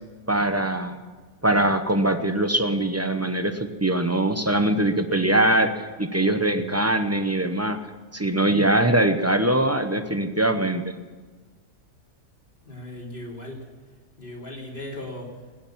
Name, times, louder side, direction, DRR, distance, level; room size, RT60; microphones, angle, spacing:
voice 1, 0.3-1.0 1.4-7.8 8.1-10.9, right 1 dB, 15° right, 7 dB, 0.6 m, -22 dB
voice 2, 12.6-13.6 14.2-15.3, left 1 dB, 35° left, -2 dB, 3.6 m, -37 dB
19.5 x 9.7 x 7.4 m, 1.4 s
omnidirectional pair, 1.7 m